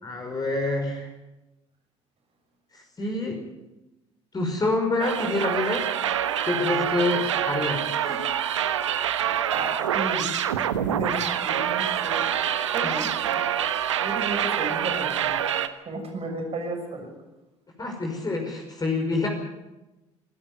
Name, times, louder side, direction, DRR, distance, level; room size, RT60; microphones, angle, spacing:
voice 1, 0.0-1.1 2.7-3.4 4.3-5.9 6.5-8.2 12.8-13.4 17.8-19.3, left 2 dB, 25° left, 1 dB, 5.6 m, -27 dB
sound 1, 5.0-15.7, right 10 dB, 80° right, 1.1 m, -26 dB
voice 2, 9.5-10.3 10.9-11.2 11.4-12.2 12.7-13.1 14.0-15.4 15.9-17.1, right 2 dB, 40° right, 4 dB, 6.6 m, -33 dB
26.5 x 13.0 x 9.4 m, 1.0 s
figure-of-eight pair, 60°, 15 cm